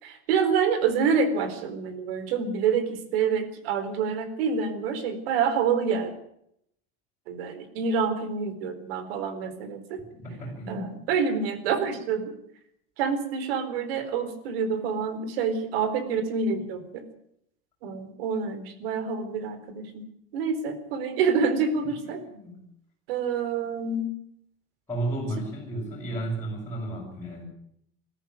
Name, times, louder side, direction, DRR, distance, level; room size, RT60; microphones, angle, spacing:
voice 1, 0.0-6.1 7.3-10.0 10.7-12.4 13.0-17.0 17.8-20.0 20.3-22.2 23.1-24.1, right 5 dB, 75° right, 11 dB, 4.2 m, -27 dB
voice 2, 10.1-11.0 21.8-22.7 24.9-27.4, right 2 dB, 10° left, -6 dB, 5.9 m, -33 dB
21.0 x 14.0 x 9.4 m, 0.73 s
supercardioid pair, 170°, 30 cm